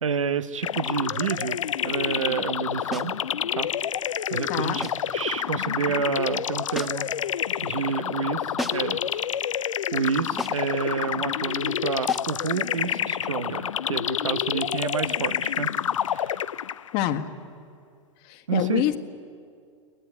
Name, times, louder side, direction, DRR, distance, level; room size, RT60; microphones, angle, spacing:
voice 1, 0.0-3.2 3.5-3.7 4.3-7.1 7.6-9.2 9.9-15.7 16.1-16.4 18.5-18.8, right 6 dB, 85° right, 11 dB, 1.1 m, -29 dB
sound 1, 0.6-17.0, left 9 dB, 85° left, 0.5 m, -28 dB
sound 2, 2.9-3.2 4.8-5.1 6.7-7.2 8.6-9.0 10.4-10.7 12.1-12.4, equal, ahead, 1.2 m, -35 dB
voice 2, 4.5-4.8 16.9-17.3 18.2-19.0, left 13 dB, 50° left, 8 dB, 1.7 m, -26 dB
23.0 x 18.5 x 9.8 m, 2.3 s
hypercardioid pair, 105°, 16 cm